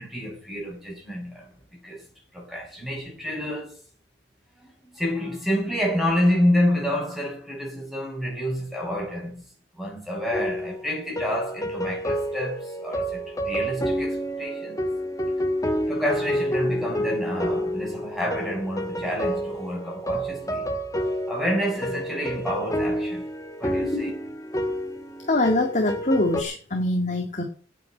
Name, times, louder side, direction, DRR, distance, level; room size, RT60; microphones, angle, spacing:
voice 1, 0.0-1.5 1.8-2.0 2.3-3.8 4.9-9.4 9.7-14.8 15.9-20.7 21.3-23.2 23.6-24.1, equal, ahead, 6.6 m, -28 dB
sound 1, 10.3-26.4, equal, 20° left, 1.6 m, -29 dB
voice 2, 23.8-24.1 25.3-27.4, left 2 dB, 40° left, 2.0 m, -24 dB
9.4 x 8.5 x 8.5 m
head